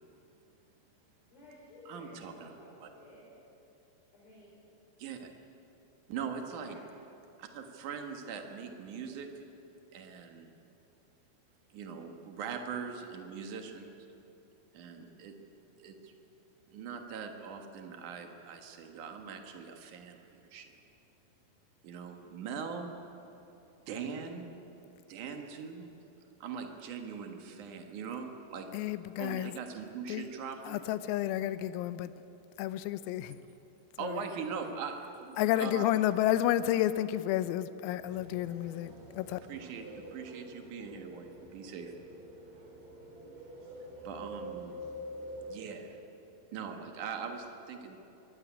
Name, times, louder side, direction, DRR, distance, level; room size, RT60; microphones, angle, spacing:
voice 1, 1.3-3.3 4.1-4.6 6.6-6.8, left 1 dB, 45° left, 6.1 m, -54 dB
voice 2, 1.8-2.5 2.8-2.9 5.0-5.3 6.1-6.8 7.4-9.3 9.9-10.5 11.7-13.9 14.7-15.3 15.8-16.1 16.7-20.7 21.8-22.9 23.9-24.5 25.1-25.9 26.4-28.7 29.1-30.8 34.0-35.9 39.5-41.9 44.0-44.7 45.5-46.0 46.5-48.0, right 6 dB, 70° right, 1.9 m, -41 dB
voice 3, 28.7-29.5 30.1-30.3 30.7-32.1 32.6-33.4 34.0-34.2 35.4-39.4, left 13 dB, 85° left, 3.5 m, -31 dB
sound 1, 38.0-46.0, equal, 50° right, 5.2 m, -47 dB
23.0 x 16.5 x 9.5 m
omnidirectional pair, 6.0 m